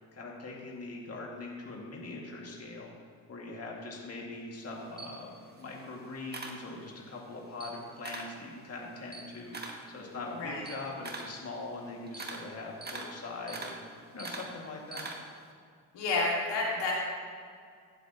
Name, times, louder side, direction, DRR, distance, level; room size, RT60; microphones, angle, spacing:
voice 1, 0.0-2.9 3.3-13.8 14.1-15.1, left 2 dB, 35° left, -2 dB, 2.1 m, -42 dB
Camera, 4.6-7.2 7.5-8.4 8.8-15.5, right 3 dB, 25° right, 1.4 m, -43 dB
voice 2, 15.9-16.9, left 3 dB, 85° left, -3 dB, 2.4 m, -30 dB
15.0 x 8.0 x 2.9 m, 2.2 s
cardioid pair, 85°, 41 cm